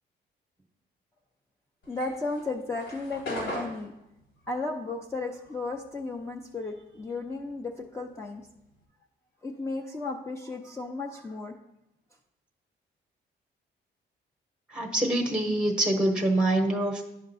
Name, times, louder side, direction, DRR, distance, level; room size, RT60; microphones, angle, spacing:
sound 1, 1.8-6.5 6.8-8.8, left 1 dB, 85° left, 2.4 m, -40 dB
voice 1, 1.9-3.9 4.5-8.5 9.4-11.5, left 3 dB, 15° left, 0 dB, 0.6 m, -34 dB
voice 2, 14.7-17.0, right 1 dB, 5° right, 3 dB, 1.0 m, -25 dB
10.5 x 5.2 x 2.6 m, 0.86 s
cardioid pair, 90°, 20 cm